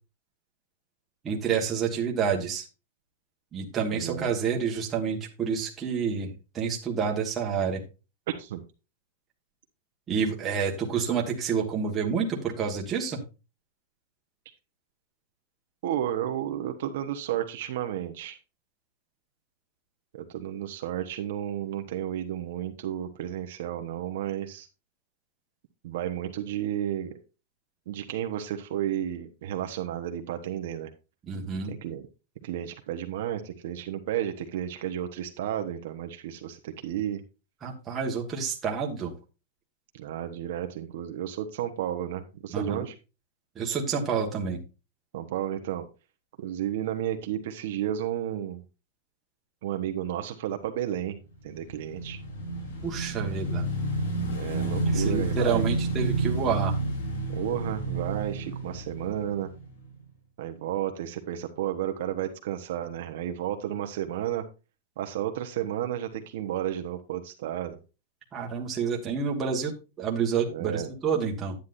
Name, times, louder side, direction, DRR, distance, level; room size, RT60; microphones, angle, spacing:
voice 1, 1.2-2.7 3.5-7.8 10.1-13.2 31.2-31.7 37.6-39.1 42.5-42.9 43.5-44.6 52.8-53.6 54.9-56.7 68.3-71.6, right 6 dB, 15° right, -1 dB, 1.4 m, -29 dB
voice 2, 3.9-4.3 8.3-8.6 15.8-18.4 20.1-24.7 25.8-27.2 27.9-30.9 31.7-32.1 32.4-37.2 39.9-42.9 45.1-45.9 46.4-48.6 49.6-51.2 51.4-52.2 54.2-55.6 57.3-59.5 60.4-64.4 65.0-67.8 70.5-70.9, right 11 dB, 50° right, 6 dB, 1.0 m, -32 dB
Motorcycle / Engine, 51.5-60.0, right 2 dB, 80° left, 4.0 m, -30 dB
10.0 x 9.3 x 2.6 m, 0.30 s
supercardioid pair, 180°, 0 cm